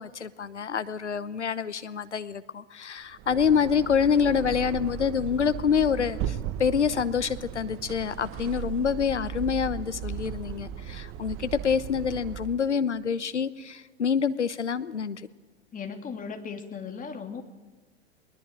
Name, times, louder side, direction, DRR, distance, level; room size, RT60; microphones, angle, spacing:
voice 1, 0.0-15.3, left 7 dB, 90° left, 15 dB, 1.0 m, -27 dB
sound 1, 3.1-12.7, right 10 dB, 40° right, 1.2 m, -37 dB
voice 2, 15.7-17.4, left 6 dB, 25° left, 6 dB, 2.6 m, -37 dB
21.5 x 20.0 x 8.9 m, 1.2 s
figure-of-eight pair, 95°, 34 cm